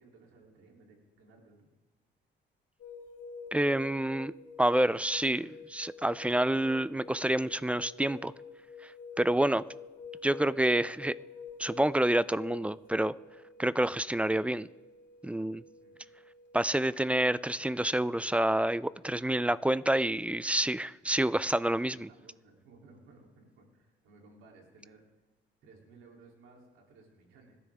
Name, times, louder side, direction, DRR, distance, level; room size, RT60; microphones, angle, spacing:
voice 1, 0.0-1.7 15.8-16.0 22.1-25.0 25.6-27.6, right 3 dB, 90° right, 3.1 m, -58 dB
sound 1, 2.8-18.3, left 4 dB, 65° left, 3.5 m, -49 dB
voice 2, 3.5-4.3 4.6-8.3 8.8-8.9 9.2-9.6 10.2-11.1 11.6-13.1 13.6-14.7 15.2-15.6 16.5-22.1, right 1 dB, 5° right, 0.4 m, -28 dB
26.0 x 12.5 x 3.5 m
cardioid pair, 90°, 20 cm